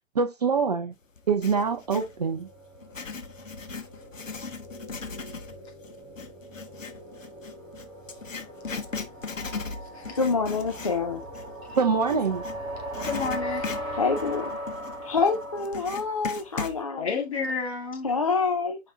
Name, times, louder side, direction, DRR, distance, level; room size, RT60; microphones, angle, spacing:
voice 1, 0.1-0.9 1.3-2.5 11.8-12.4, right 5 dB, 30° right, 0.8 m, -24 dB
Writing, 1.2-2.1 2.7-12.6 12.9-16.8, left 4 dB, 70° left, 1.4 m, -38 dB
sound 1, 1.5-16.7, equal, 10° right, 3.4 m, -39 dB
voice 2, 10.2-11.2 13.9-14.6 15.0-17.1 18.0-18.8, left 4 dB, 25° left, 0.5 m, -26 dB
voice 3, 13.1-13.7 17.0-18.1, left 5 dB, 50° left, 2.5 m, -31 dB
8.9 x 5.3 x 2.4 m
figure-of-eight pair, 135°, 40 cm